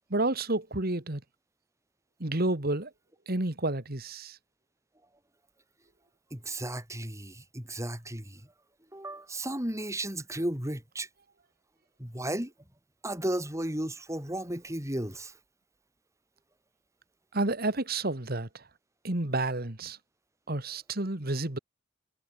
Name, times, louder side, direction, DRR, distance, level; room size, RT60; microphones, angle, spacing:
voice 1, 0.1-1.2 2.2-2.9 3.3-4.4 17.3-18.6 19.0-20.0 20.5-21.6, right 2 dB, 50° right, 2.3 m, -30 dB
voice 2, 6.3-8.5 8.9-11.1 12.0-12.5 13.0-15.3, right 1 dB, 15° right, 7.4 m, -34 dB
head